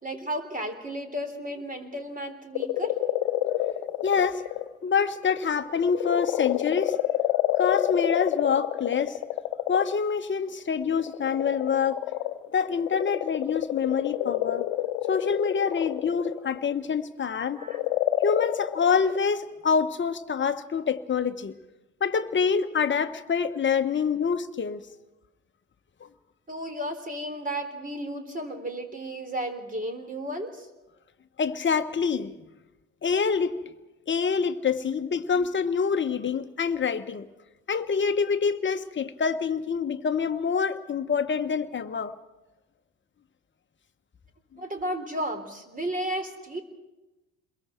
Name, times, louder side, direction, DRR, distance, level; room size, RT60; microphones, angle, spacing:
voice 1, 0.0-3.0 17.6-17.9 23.9-24.1 26.5-30.7 44.6-46.6, right 1 dB, 20° right, 7 dB, 3.8 m, -33 dB
sound 1, 2.5-4.7 5.2-10.0 10.8-17.0 17.5-19.2, left 15 dB, 70° left, 1.0 m, -28 dB
voice 2, 4.0-4.4 4.8-7.0 7.6-9.2 9.7-12.0 12.5-14.7 15.1-17.6 18.2-21.5 22.0-24.8 31.4-32.3 33.0-33.5 34.1-37.3 37.7-42.1, left 6 dB, 30° left, 8 dB, 1.3 m, -26 dB
28.5 x 22.0 x 4.6 m, 1.1 s
hypercardioid pair, 55°, 39 cm